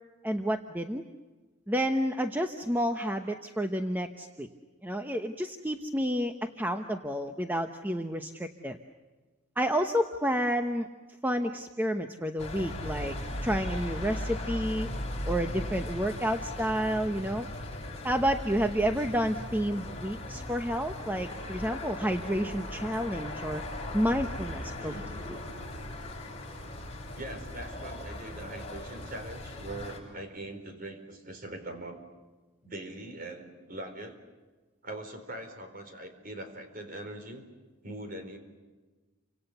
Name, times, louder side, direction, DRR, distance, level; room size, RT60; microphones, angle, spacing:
voice 1, 0.2-1.0 1.7-4.5 4.8-8.8 9.6-10.9 11.2-13.1 13.4-14.9 15.3-17.5 18.0-23.6 23.9-24.9 25.3-25.4, equal, 10° right, 5 dB, 0.9 m, -30 dB
sound 1, 12.4-30.0, left 1 dB, 30° left, 7.6 m, -38 dB
voice 2, 24.8-25.1 27.1-32.0 32.6-34.2 34.8-37.4 37.8-38.4, right 1 dB, 40° right, 7 dB, 4.4 m, -42 dB
29.5 x 26.0 x 6.9 m, 1.3 s
head